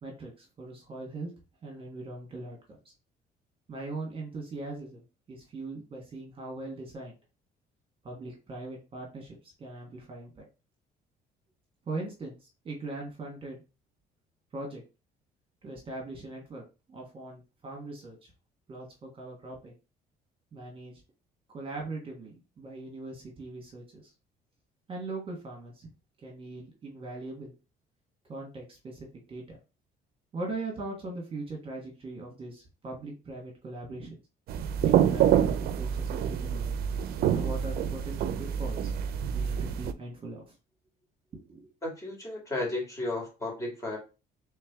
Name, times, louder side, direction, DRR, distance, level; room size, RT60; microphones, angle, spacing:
voice 1, 0.0-1.3 1.6-2.6 3.7-5.0 5.3-7.1 8.0-10.5 11.9-13.6 14.5-14.8 15.6-16.6 16.9-18.3 18.7-19.7 20.5-21.0 21.5-24.1 24.9-25.9 26.2-27.5 28.3-29.6 30.3-34.2 34.8-36.8 37.3-38.9 39.3-40.5 41.3-41.7, right 2 dB, 35° right, 0 dB, 1.3 m, -40 dB
sound 1, 34.5-39.9, right 9 dB, 65° right, 0.5 m, -27 dB
voice 2, 41.8-44.0, left 2 dB, 20° left, -2 dB, 2.1 m, -33 dB
3.4 x 3.1 x 3.5 m, 0.30 s
cardioid pair, 110°, 17 cm